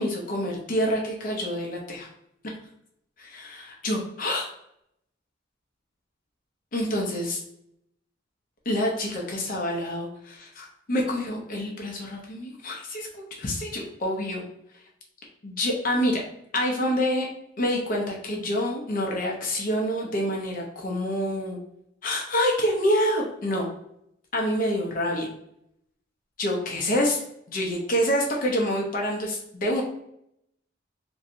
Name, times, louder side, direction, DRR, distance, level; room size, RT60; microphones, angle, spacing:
voice 1, 0.0-2.1 3.2-4.5 6.7-7.4 8.7-14.4 15.4-16.2 16.5-17.3 17.6-21.6 22.0-23.7 24.3-25.3 26.4-27.2 27.5-29.8, equal, 45° left, 0 dB, 0.6 m, -27 dB
3.0 x 2.6 x 2.6 m, 0.76 s
head